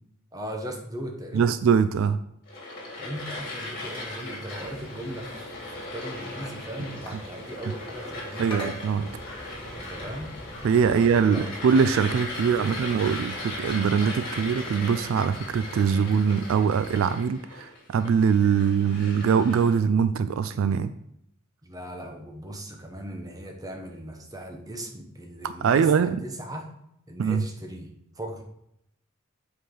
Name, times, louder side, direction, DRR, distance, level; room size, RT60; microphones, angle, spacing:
voice 1, 0.3-1.5 3.0-8.8 9.7-10.3 10.9-11.7 12.4-13.0 21.6-26.7 27.1-28.4, right 1 dB, 15° right, 3 dB, 1.0 m, -38 dB
voice 2, 1.3-2.2 8.4-9.1 10.6-20.9 25.4-26.2 27.2-27.4, right 6 dB, 70° right, 12 dB, 0.3 m, -23 dB
sound 1, 2.5-19.8, left 2 dB, 45° left, 2.2 m, -38 dB
sound 2, 4.5-17.0, equal, 25° left, 1.8 m, -44 dB
7.7 x 4.9 x 3.8 m, 0.77 s
head